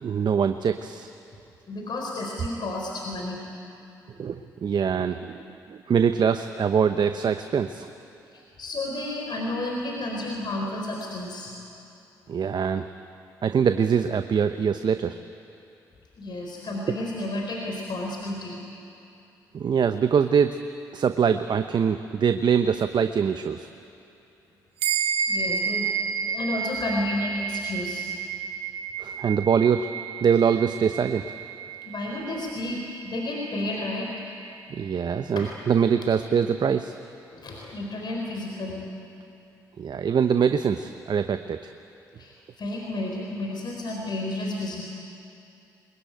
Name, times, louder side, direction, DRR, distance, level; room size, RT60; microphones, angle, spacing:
voice 1, 0.0-1.1 4.2-5.4 5.7-7.9 12.3-12.9 13.4-15.2 19.5-20.6 20.9-23.7 29.0-29.9 30.2-31.3 34.7-36.9 39.8-41.7, right 7 dB, 55° right, 9 dB, 0.9 m, -23 dB
voice 2, 1.7-3.4 8.3-11.5 16.2-18.6 25.3-25.9 26.2-28.1 31.8-34.1 35.4-35.5 37.3-38.9 42.2-42.3 42.6-44.8, left 1 dB, 55° left, -1 dB, 4.4 m, -31 dB
sound 1, 24.8-34.5, right 6 dB, 80° right, 1.9 m, -31 dB
22.5 x 21.5 x 9.2 m, 2.7 s
hypercardioid pair, 45°, 9 cm